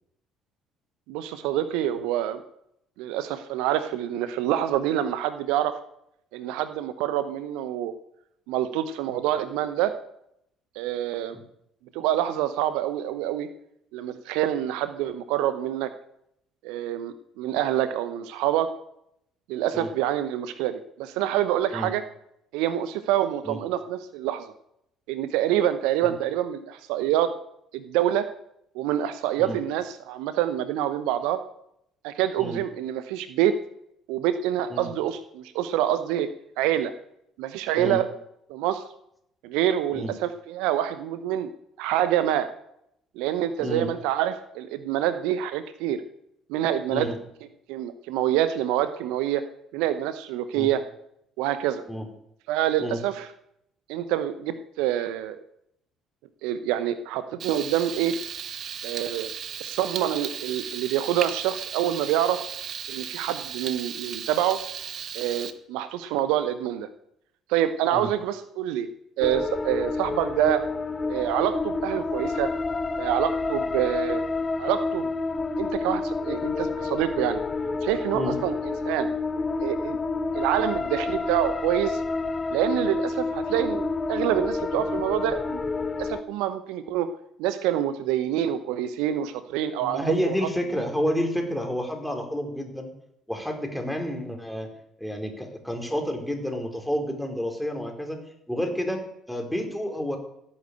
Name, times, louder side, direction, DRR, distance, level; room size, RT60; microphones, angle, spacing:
voice 1, 1.1-2.4 3.0-5.7 6.3-7.9 8.5-9.9 10.7-11.4 11.9-13.5 13.9-15.9 16.6-18.7 19.5-22.0 22.5-24.5 25.1-27.3 27.7-28.3 28.7-31.4 32.0-33.5 34.1-36.3 36.6-36.9 37.4-38.1 38.5-38.8 39.4-41.5 41.8-42.5 43.2-46.0 46.5-47.1 47.7-49.4 49.7-50.8 51.4-51.8 52.5-53.3 53.9-55.4 56.4-58.1 58.8-59.3 59.6-62.4 62.9-64.6 65.1-66.9 67.5-68.9 69.2-70.6 71.1-72.5 73.0-74.2 74.6-75.1 75.6-77.4 77.8-79.1 79.6-80.0 80.3-82.0 82.5-85.6 86.0-87.1 87.4-90.3, right 12 dB, 70° right, 12 dB, 0.8 m, -26 dB
Frying (food), 57.4-65.5, right 8 dB, 50° right, 1.2 m, -35 dB
sound 1, 69.2-86.2, left 3 dB, 30° left, 1.1 m, -29 dB
voice 2, 89.8-92.9 93.3-94.7 95.0-98.2 98.5-100.2, equal, ahead, 3 dB, 4.6 m, -29 dB
16.0 x 8.7 x 8.2 m, 0.77 s
figure-of-eight pair, 50°, 0 cm